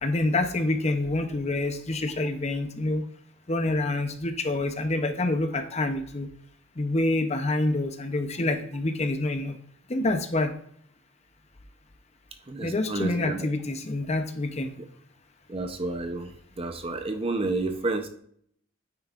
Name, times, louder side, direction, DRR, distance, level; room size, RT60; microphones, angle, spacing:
voice 1, 0.0-3.0 3.5-6.3 6.8-9.5 9.9-10.5 12.6-14.7, left 2 dB, 30° left, 7 dB, 0.7 m, -27 dB
voice 2, 12.5-13.5 15.5-16.3 16.6-18.1, right 2 dB, 25° right, 6 dB, 0.7 m, -30 dB
9.2 x 9.0 x 2.5 m, 0.65 s
head